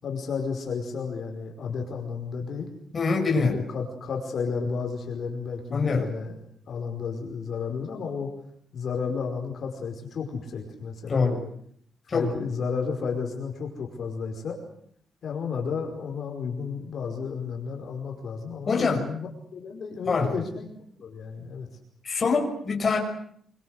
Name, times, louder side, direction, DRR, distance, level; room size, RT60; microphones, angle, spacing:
voice 1, 0.0-2.7 3.3-6.3 6.7-8.3 8.7-11.4 12.1-14.6 15.2-20.7 21.0-21.7, left 5 dB, 50° left, 2 dB, 5.2 m, -32 dB
voice 2, 2.9-3.6 5.7-6.0 11.1-11.4 12.1-12.3 18.7-19.1 20.1-20.3 22.0-23.0, left 4 dB, 30° left, 1 dB, 6.2 m, -24 dB
27.5 x 25.0 x 8.1 m, 0.65 s
wide cardioid pair, 175°, 0 cm